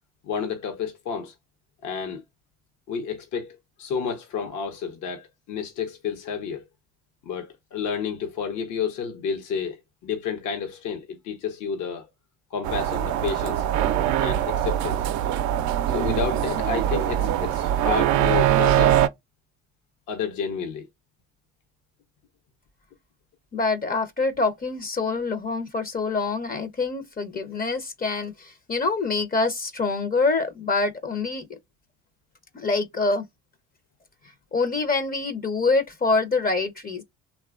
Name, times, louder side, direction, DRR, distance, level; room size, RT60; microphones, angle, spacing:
voice 1, 0.2-1.3 1.8-2.2 2.9-6.7 7.2-12.1 12.5-13.6 14.2-15.1 15.9-19.0 20.1-20.9, left 6 dB, 60° left, 0.9 m, -30 dB
sound 1, 12.6-19.1, right 11 dB, 60° right, 0.5 m, -22 dB
voice 2, 23.5-31.6 32.5-33.2 34.5-37.0, left 3 dB, 25° left, 0.7 m, -25 dB
3.0 x 2.3 x 2.4 m
supercardioid pair, 80°, 33 cm